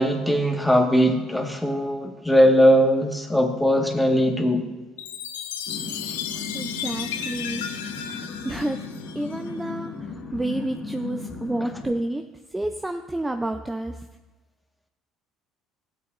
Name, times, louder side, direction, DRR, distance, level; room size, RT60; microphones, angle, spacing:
voice 1, 0.0-4.6, equal, 5° left, 1 dB, 1.7 m, -20 dB
Chime, 5.0-9.5, left 9 dB, 85° left, 0.6 m, -34 dB
sound 1, 5.7-11.9, left 4 dB, 40° left, 2.1 m, -36 dB
voice 2, 6.5-7.6 8.1-8.8 9.2-9.9 10.3-12.2 12.5-13.9, right 1 dB, 15° right, 6 dB, 0.6 m, -29 dB
16.0 x 8.7 x 2.6 m, 1.2 s
hypercardioid pair, 65°, 0 cm